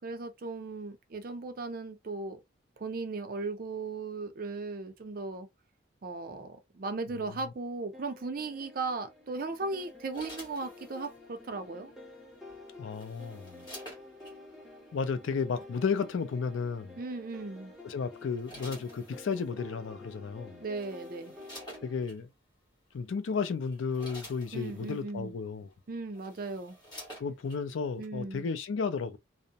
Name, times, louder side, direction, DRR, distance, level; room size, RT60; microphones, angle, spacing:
voice 1, 0.0-2.4 2.8-5.5 6.0-11.9 17.0-17.7 20.6-21.4 24.5-25.3 25.9-26.8 28.0-28.5, right 3 dB, 45° right, 0.5 m, -37 dB
sound 1, 7.9-22.0, left 2 dB, ahead, 0.6 m, -50 dB
sound 2, 9.8-11.2 12.5-14.4 15.4-15.6 17.3-17.6 18.1-19.5 20.3-20.4 20.7-22.2 22.9-23.1 23.5-25.0 25.7-25.8 26.1-27.6 28.0-28.1, equal, 20° left, 1.4 m, -49 dB
voice 2, 12.8-13.7 14.9-17.0 17.8-20.6 21.8-22.3 22.9-25.7 27.2-29.2, left 5 dB, 80° left, 0.4 m, -33 dB
2.6 x 2.0 x 2.7 m
head